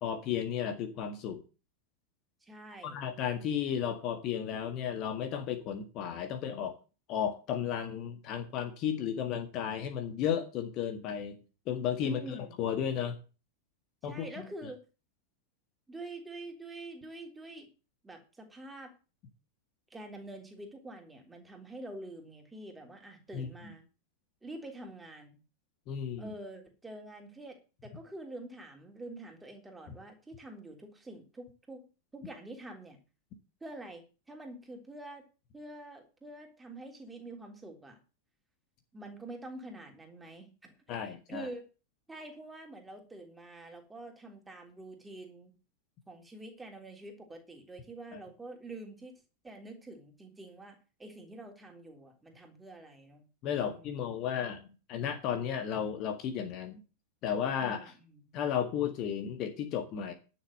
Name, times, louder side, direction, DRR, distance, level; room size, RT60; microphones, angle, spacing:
voice 1, 0.0-1.4 2.8-6.7 7.1-11.4 11.7-12.2 12.6-13.2 14.0-14.2 23.3-23.5 25.9-26.3 40.9-41.5 48.1-48.2 53.4-56.8 57.2-57.9 58.3-60.1, left 8 dB, 40° left, 7 dB, 1.7 m, -33 dB
voice 2, 2.4-3.0 12.0-12.6 14.0-14.8 15.9-17.7 18.0-18.9 19.9-23.9 24.4-25.4 26.2-27.6 27.8-31.9 32.1-33.0 33.6-35.2 35.5-38.0 38.9-41.6 42.1-45.5 46.1-49.2 49.4-53.2 53.6-54.1 57.6-58.3, right 2 dB, 10° right, 3 dB, 3.5 m, -46 dB
11.0 x 6.6 x 7.7 m, 0.33 s
figure-of-eight pair, 90°, 0 cm